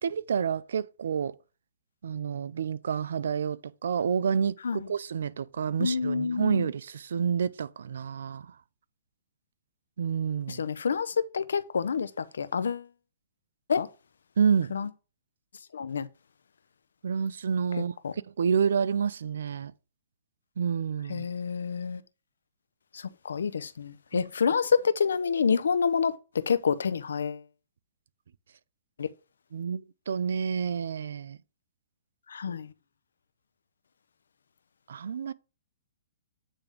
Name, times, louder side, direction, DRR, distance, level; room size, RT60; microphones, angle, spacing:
voice 1, 0.0-1.3 2.0-8.5 10.0-10.6 14.4-14.7 17.0-17.9 18.4-19.7 20.6-21.3 24.1-24.3 29.5-31.4 34.9-35.3, right 7 dB, 75° right, 0.5 m, -29 dB
voice 2, 5.8-6.7 10.5-12.1 12.4-12.8 13.7-13.9 14.7-14.9 15.7-16.1 18.0-18.1 21.1-22.0 23.2-26.1 26.5-27.4 29.0-29.1 32.3-32.7, left 6 dB, 85° left, 0.6 m, -27 dB
8.8 x 3.5 x 5.2 m
hypercardioid pair, 145°, 0 cm